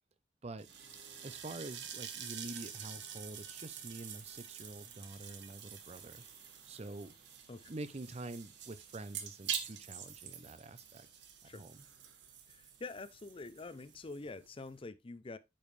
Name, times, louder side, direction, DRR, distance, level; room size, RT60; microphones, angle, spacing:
sound 1, 0.6-14.8, right 8 dB, 85° right, 1.3 m, -47 dB
sound 2, 0.7-14.1, right 3 dB, 60° right, 2.4 m, -65 dB
voice 1, 1.2-6.2 6.7-7.1 7.7-11.1 11.5-11.8, right 2 dB, 35° right, 0.6 m, -46 dB
voice 2, 12.5-15.4, left 3 dB, 30° left, 0.5 m, -46 dB
8.7 x 5.3 x 3.2 m
head